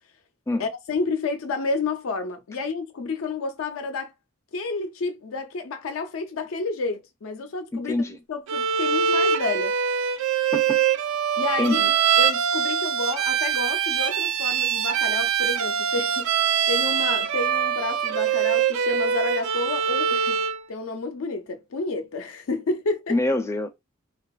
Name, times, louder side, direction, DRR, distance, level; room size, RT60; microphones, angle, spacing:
voice 1, 0.6-4.1 4.5-7.9 8.3-9.7 11.4-11.8 12.2-16.3 16.7-20.4 20.7-23.2, left 3 dB, 80° left, 0.5 m, -30 dB
Bowed string instrument, 8.5-20.6, right 7 dB, 90° right, 0.3 m, -23 dB
voice 2, 11.6-11.9 23.1-23.7, left 2 dB, 15° left, 0.4 m, -24 dB
2.7 x 2.3 x 2.3 m
head